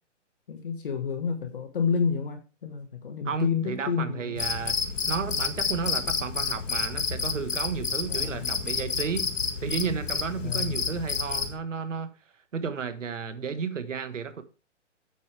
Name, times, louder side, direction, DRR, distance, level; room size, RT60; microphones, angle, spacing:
voice 1, 0.5-4.4 8.1-8.4 10.4-10.8, left 6 dB, 45° left, 1.5 m, -30 dB
voice 2, 3.2-9.3 9.6-12.1 12.5-14.4, right 6 dB, 80° right, 1.5 m, -32 dB
Cricket, 4.4-11.6, left 5 dB, 85° left, 1.9 m, -30 dB
9.9 x 8.3 x 3.3 m
hypercardioid pair, 170°, 37 cm